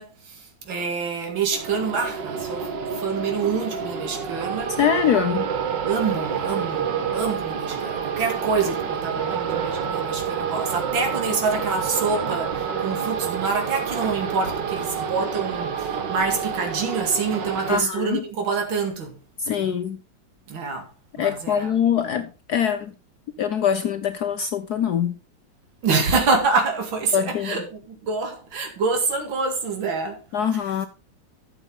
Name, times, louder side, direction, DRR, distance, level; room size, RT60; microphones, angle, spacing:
voice 1, 0.0-4.7 5.9-19.1 19.6-19.8 20.5-20.8 21.2-21.8 25.8-30.2 30.5-30.8, right 4 dB, 80° right, 2.9 m, -26 dB
sound 1, 1.5-17.8, right 7 dB, 65° right, 1.9 m, -28 dB
voice 2, 4.8-5.5 17.7-18.2 19.5-20.0 21.2-22.9 23.4-25.1 27.1-27.6 30.3-30.9, left 8 dB, 65° left, 1.1 m, -23 dB
13.0 x 7.1 x 3.8 m
omnidirectional pair, 2.1 m